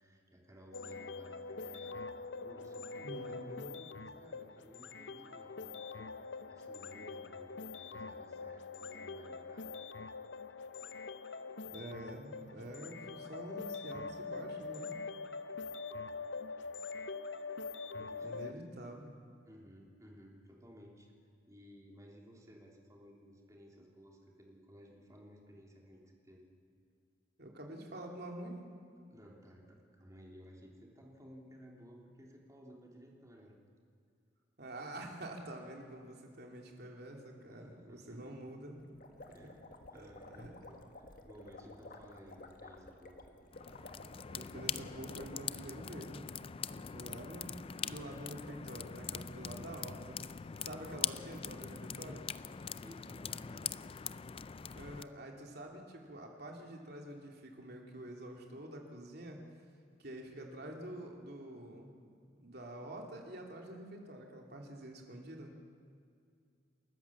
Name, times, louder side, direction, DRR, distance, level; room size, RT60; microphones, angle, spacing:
voice 1, 0.0-2.0 2.4-9.8 17.9-18.6 19.4-21.1 21.5-26.4 29.1-33.6 37.5-38.3 39.3-43.2 52.7-54.0, equal, 20° right, -1 dB, 3.2 m, -57 dB
sound 1, 0.7-18.5, left 4 dB, 85° left, 0.7 m, -44 dB
voice 2, 3.0-3.3 11.7-14.9 18.2-19.2 27.4-28.6 34.6-38.9 39.4-39.5 39.9-40.5 44.3-46.4 46.8-47.5 47.8-50.2 50.6-52.2 54.7-59.4 60.0-61.9 62.4-65.5, right 1 dB, 60° right, 1 dB, 3.1 m, -47 dB
sound 2, 38.8-45.6, left 2 dB, 50° left, 1.7 m, -53 dB
sound 3, 43.5-55.0, left 7 dB, 30° left, 0.4 m, -43 dB
28.5 x 13.5 x 7.2 m, 2.3 s
head